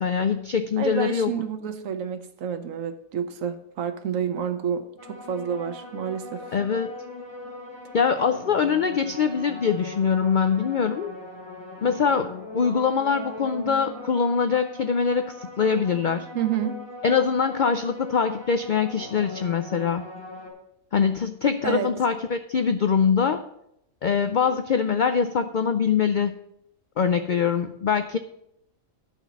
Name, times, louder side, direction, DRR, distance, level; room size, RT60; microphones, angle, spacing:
voice 1, 0.0-1.3 6.5-6.9 7.9-11.1 11.8-16.3 17.0-20.0 20.9-23.4 24.0-26.4 27.0-28.2, left 6 dB, 75° left, 9 dB, 0.4 m, -23 dB
voice 2, 0.8-6.4 16.3-16.8 21.6-21.9, right 8 dB, 70° right, 9 dB, 1.2 m, -29 dB
sound 1, 5.0-20.5, left 2 dB, 25° left, 3.5 m, -40 dB
11.5 x 4.4 x 7.0 m, 0.79 s
omnidirectional pair, 1.4 m